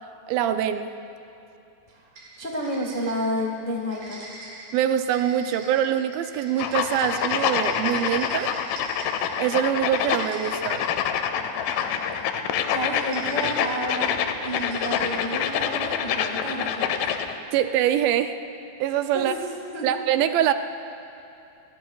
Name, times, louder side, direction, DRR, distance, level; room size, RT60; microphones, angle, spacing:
voice 1, 0.3-0.9 4.7-8.5 9.4-10.9 17.5-18.4 18.8-19.3 19.8-20.5, right 10 dB, 80° right, 8 dB, 2.3 m, -24 dB
sound 1, 2.2-3.5 3.8-9.4 9.8-11.0 11.6-12.3 12.9-13.8 14.4-15.5, right 2 dB, 55° right, 5.6 m, -43 dB
voice 2, 2.4-4.2 12.7-14.1 14.4-17.0 19.1-19.9, equal, 45° left, -2 dB, 0.6 m, -30 dB
sound 2, 6.6-17.3, left 8 dB, 85° left, 2.5 m, -26 dB
29.0 x 20.0 x 2.3 m, 2.7 s
omnidirectional pair, 4.3 m